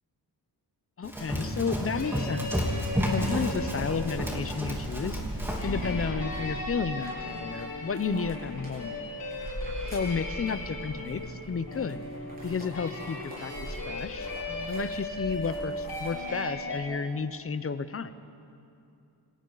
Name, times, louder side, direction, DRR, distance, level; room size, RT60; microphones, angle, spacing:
voice 1, 1.0-2.6 3.1-5.2 5.6-9.0 9.9-12.0 12.4-14.3 14.7-18.1, left 5 dB, 35° left, 13 dB, 0.7 m, -32 dB
Run, 1.0-5.7, equal, 5° right, 3.1 m, -31 dB
sound 1, 1.9-16.8, left 1 dB, 60° left, 6.4 m, -37 dB
sound 2, 2.3-16.4, equal, 20° right, 7.7 m, -41 dB
29.0 x 26.0 x 4.0 m, 2.6 s
wide cardioid pair, 140°, 41 cm